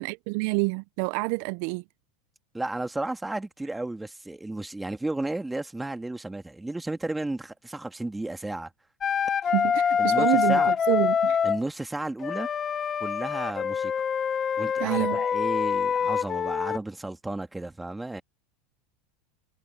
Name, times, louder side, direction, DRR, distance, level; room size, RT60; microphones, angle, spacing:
voice 1, 0.0-1.8 9.5-11.4 14.8-15.2, right 27 dB, 60° right, 0.4 m, -27 dB
voice 2, 2.5-8.7 10.0-10.7 11.4-12.5 13.0-13.9 14.6-18.2, right 2 dB, 5° right, 2.0 m, -33 dB
Wind instrument woodwind instrument, 9.0-11.6 12.2-16.8, left 7 dB, 25° left, 0.8 m, -25 dB
supercardioid pair, 130°, 0 cm